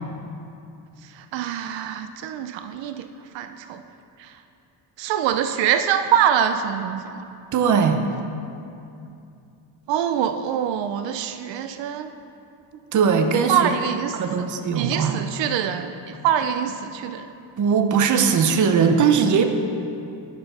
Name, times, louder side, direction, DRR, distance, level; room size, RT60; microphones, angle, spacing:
voice 1, 1.1-3.1 3.3-3.8 4.2-4.3 5.0-7.3 9.9-12.1 13.5-14.5 14.7-17.3, right 9 dB, 85° right, 9 dB, 0.6 m, -24 dB
voice 2, 7.5-8.0 12.9-13.7 14.1-15.3 17.6-19.4, right 6 dB, 45° right, 6 dB, 0.6 m, -19 dB
7.9 x 7.0 x 5.4 m, 2.6 s
cardioid pair, 160°, 43 cm